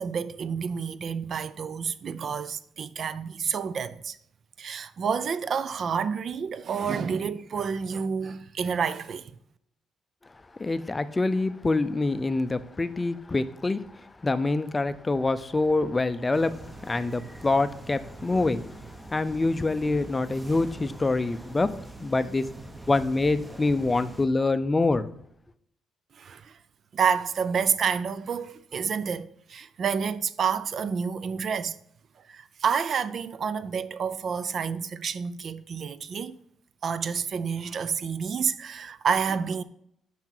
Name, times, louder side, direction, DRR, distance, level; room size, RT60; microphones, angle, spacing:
voice 1, 0.0-4.2 4.6-9.3 26.2-26.6 26.9-31.8 32.3-36.3 36.8-39.6, right 6 dB, 55° right, 0.4 m, -29 dB
voice 2, 10.6-13.8 14.2-16.5 16.9-18.6 19.1-21.7 22.0-22.4 22.9-25.1, left 3 dB, 20° left, 0.4 m, -25 dB
sound 1, 16.3-24.3, right 2 dB, 15° right, 0.8 m, -44 dB
5.8 x 5.6 x 4.5 m
cardioid pair, 90°, 0 cm